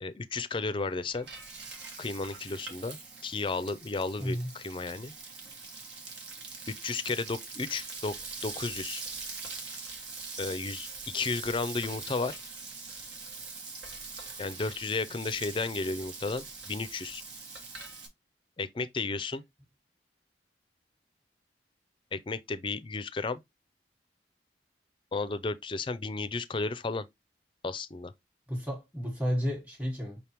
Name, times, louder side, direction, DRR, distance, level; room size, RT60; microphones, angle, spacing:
voice 1, 0.0-1.3 2.0-3.0 3.2-5.1 6.7-8.1 8.4-9.0 10.4-12.4 14.4-17.2 18.6-19.4 22.1-23.4 25.1-27.0 27.6-28.1, left 3 dB, 25° left, 0.4 m, -33 dB
Frying (food), 0.8-18.1, right 4 dB, 80° right, 1.3 m, -43 dB
voice 2, 4.2-4.5 28.5-30.2, equal, 10° right, 1.2 m, -32 dB
5.3 x 3.4 x 2.8 m
head